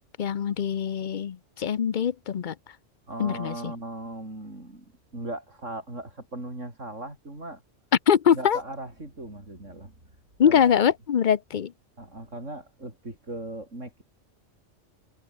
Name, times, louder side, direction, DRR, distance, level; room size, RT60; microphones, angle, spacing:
voice 1, 0.2-2.5 3.2-3.7 8.1-8.6 10.4-11.7, left 8 dB, 50° left, 0.7 m, -23 dB
voice 2, 3.1-7.6 8.3-9.9 10.4-10.8 12.0-14.0, right 1 dB, 85° right, 7.4 m, -38 dB
omnidirectional pair, 1.2 m